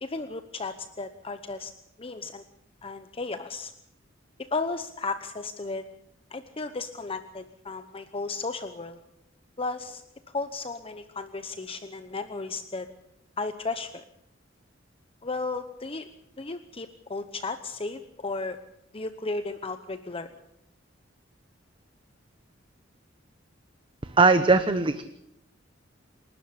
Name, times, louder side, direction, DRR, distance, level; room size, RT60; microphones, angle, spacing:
voice 1, 0.0-1.7 2.0-2.4 2.8-3.7 4.5-5.8 6.3-9.0 9.6-10.0 10.3-12.9 13.4-14.0 15.2-16.1 16.4-18.6 18.9-20.3, left 3 dB, 30° left, 9 dB, 1.0 m, -34 dB
voice 2, 24.0-25.0, right 3 dB, 25° right, 10 dB, 0.9 m, -20 dB
28.0 x 12.5 x 8.5 m, 0.78 s
head